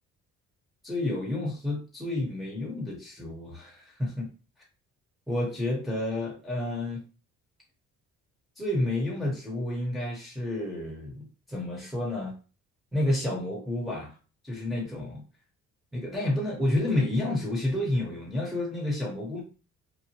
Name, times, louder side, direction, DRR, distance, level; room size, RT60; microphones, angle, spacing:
voice 1, 0.8-4.3 5.3-7.0 8.6-12.3 12.9-14.2 14.4-15.2 15.9-19.4, left 1 dB, ahead, -3 dB, 1.0 m, -30 dB
2.8 x 2.1 x 2.9 m, 0.35 s
cardioid pair, 90°, 30 cm